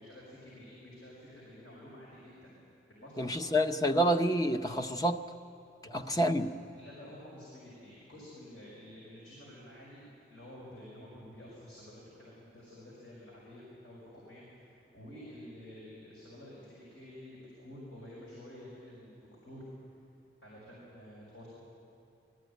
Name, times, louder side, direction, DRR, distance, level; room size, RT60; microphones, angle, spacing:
voice 1, 0.0-2.5 2.9-3.6 6.0-6.3 6.7-10.0 10.3-19.7 20.4-21.5, left 1 dB, 80° left, -7 dB, 5.7 m, -50 dB
voice 2, 3.2-5.3 6.2-6.5, equal, 20° left, 5 dB, 0.6 m, -28 dB
20.5 x 14.5 x 9.2 m, 2.7 s
head